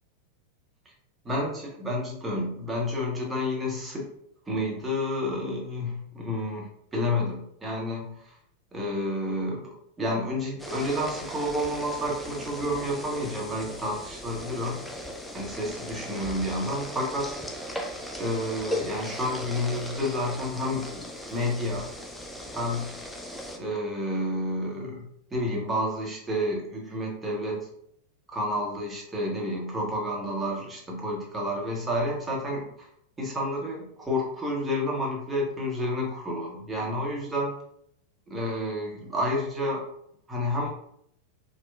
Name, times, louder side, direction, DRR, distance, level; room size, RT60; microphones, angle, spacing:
voice 1, 1.2-4.1 4.5-8.3 8.7-14.8 15.3-17.4 18.2-20.9 21.3-21.9 22.5-22.9 23.6-27.7 28.3-32.9 33.2-37.6 38.3-39.8 40.3-40.7, left 1 dB, 15° right, -2 dB, 0.7 m, -30 dB
sound 1, 10.6-23.6, left 1 dB, 5° left, 0.3 m, -38 dB
2.8 x 2.1 x 2.3 m, 0.71 s
figure-of-eight pair, 90°, 0 cm